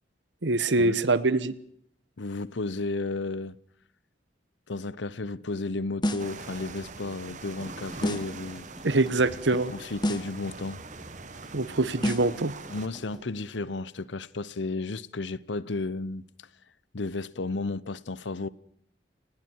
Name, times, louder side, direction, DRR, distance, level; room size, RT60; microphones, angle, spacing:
voice 1, 0.4-1.5 8.8-9.7 11.5-12.5, right 2 dB, 75° right, 1.2 m, -24 dB
voice 2, 2.2-3.6 4.7-8.7 9.7-10.8 12.7-16.2 16.9-18.5, left 3 dB, 75° left, 0.9 m, -33 dB
sound 1, 6.0-6.4 8.0-8.4 10.0-10.4 12.0-12.4, left 1 dB, 25° left, 1.6 m, -29 dB
sound 2, 6.2-12.9, right 3 dB, 40° right, 1.6 m, -43 dB
sound 3, 7.6-13.2, equal, ahead, 7.0 m, -50 dB
29.5 x 19.5 x 4.7 m
head